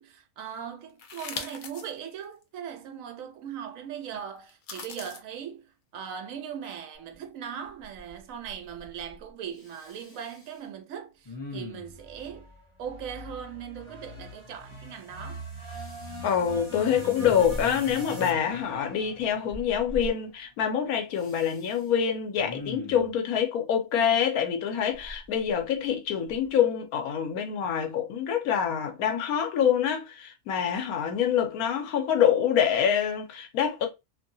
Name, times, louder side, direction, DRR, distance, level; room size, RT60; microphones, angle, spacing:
voice 1, 0.0-12.5 12.8-15.4, right 8 dB, 70° right, 1.0 m, -39 dB
sound 1, 1.0-1.9 2.4-2.5 4.5-5.2, left 5 dB, 65° left, 0.5 m, -39 dB
Respiratory sounds, 7.1-7.2 7.6-8.2 8.4-9.2 9.6-10.6 11.2-12.1 15.7-16.3 16.9-17.9 19.5-20.1 21.1-21.8 22.4-23.1 24.9-25.9 26.3-26.5, left 1 dB, 25° left, 0.7 m, -41 dB
sound 2, 12.0-20.3, equal, 20° right, 1.3 m, -42 dB
voice 2, 16.2-33.9, left 8 dB, 90° left, 1.1 m, -26 dB
2.8 x 2.7 x 2.6 m
omnidirectional pair, 1.5 m